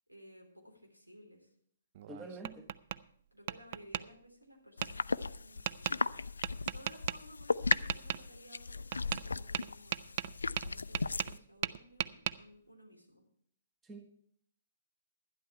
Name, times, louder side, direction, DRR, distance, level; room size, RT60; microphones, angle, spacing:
voice 1, 0.1-1.5 2.2-2.6 3.3-6.1 6.7-10.1 10.6-13.2, equal, 85° right, 2 dB, 3.5 m, -57 dB
Tap, 2.0-3.0 3.5-4.0 4.8-4.9 5.7-6.0 6.4-7.2 7.7-8.2 8.9-9.3 9.5-11.4 11.6-12.4, right 11 dB, 40° right, 0.4 m, -36 dB
voice 2, 2.1-2.7 13.8-14.1, right 2 dB, 10° right, 4 dB, 1.3 m, -46 dB
sound 1, 4.8-11.4, left 4 dB, 70° left, 0.4 m, -36 dB
12.0 x 11.0 x 4.4 m, 0.62 s
figure-of-eight pair, 125°, 0 cm